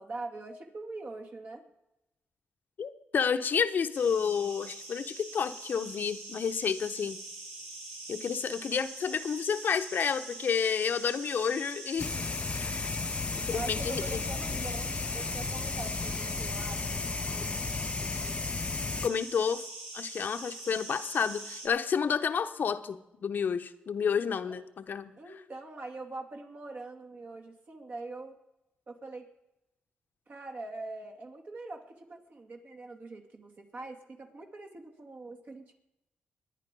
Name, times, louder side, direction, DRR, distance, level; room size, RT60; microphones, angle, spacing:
voice 1, 0.0-1.7 13.5-17.0 24.4-24.7 25.2-28.4 28.9-29.3 30.3-35.8, right 2 dB, 50° right, 3 dB, 2.6 m, -43 dB
voice 2, 2.8-7.2 8.1-12.3 12.6-12.9 13.3-14.2 19.0-19.6 19.9-24.6 24.9-25.1, left 6 dB, 60° left, 9 dB, 0.9 m, -30 dB
sound 1, 3.9-21.7, right 2 dB, 70° right, 6.9 m, -44 dB
sound 2, 12.0-19.1, left 4 dB, 35° left, 0.5 m, -34 dB
21.5 x 10.0 x 5.4 m, 0.91 s
cardioid pair, 75°, 4 cm